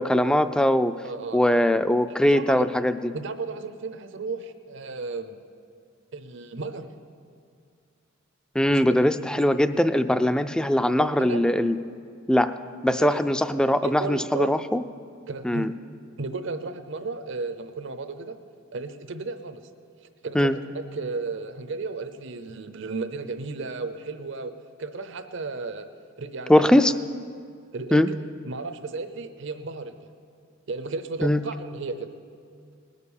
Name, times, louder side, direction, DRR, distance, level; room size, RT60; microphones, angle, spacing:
voice 1, 0.0-0.9 1.3-3.0 8.6-11.8 12.3-12.5 12.8-14.8 15.4-15.7 20.4-20.6 26.5-26.9 27.9-28.1 31.2-31.4, left 1 dB, 5° left, 11 dB, 0.3 m, -21 dB
voice 2, 1.0-1.4 2.1-2.7 3.1-5.4 6.1-6.9 8.7-9.0 11.0-11.4 12.9-13.3 13.8-14.5 15.3-15.7 16.2-18.4 18.7-19.6 20.2-24.5 24.8-25.9 26.2-27.0 27.7-30.0 30.7-32.1, right 3 dB, 65° right, 9 dB, 0.8 m, -34 dB
19.5 x 6.6 x 7.1 m, 2.2 s
head